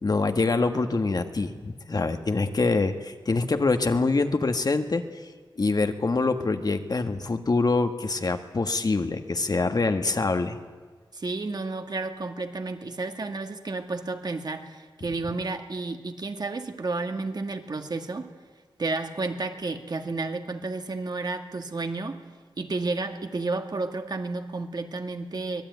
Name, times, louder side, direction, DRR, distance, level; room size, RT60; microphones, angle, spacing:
voice 1, 0.0-5.0 5.6-10.6, left 3 dB, 50° left, 7 dB, 1.6 m, -25 dB
voice 2, 11.1-18.3 18.8-22.2 22.6-25.6, right 3 dB, 55° right, 6 dB, 2.0 m, -31 dB
24.5 x 19.0 x 9.4 m, 1.4 s
wide cardioid pair, 105°, 8 cm